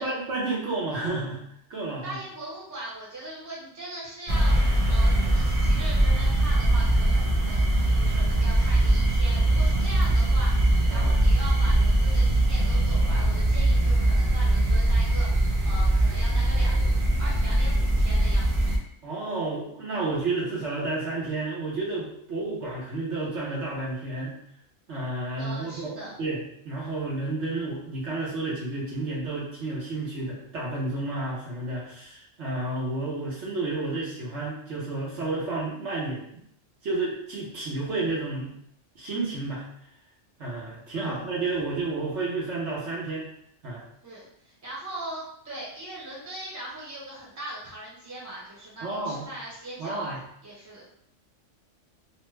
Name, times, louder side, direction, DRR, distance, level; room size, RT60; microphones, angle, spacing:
voice 1, 0.0-1.4 1.7-2.2 10.9-11.1 19.0-24.4 24.9-36.4 36.8-38.5 38.9-39.7 40.4-43.3 43.6-43.8 48.8-49.3 49.8-50.2, right 2 dB, 65° right, -5 dB, 1.1 m, -31 dB
voice 2, 2.0-4.6 4.9-16.8 17.2-18.7 25.4-26.1 41.0-41.4 44.0-50.8, right 1 dB, 15° right, -6 dB, 0.9 m, -40 dB
sound 1, 4.3-18.8, right 1 dB, 50° right, 0.4 m, -22 dB
3.0 x 2.1 x 3.1 m, 0.69 s
omnidirectional pair, 1.3 m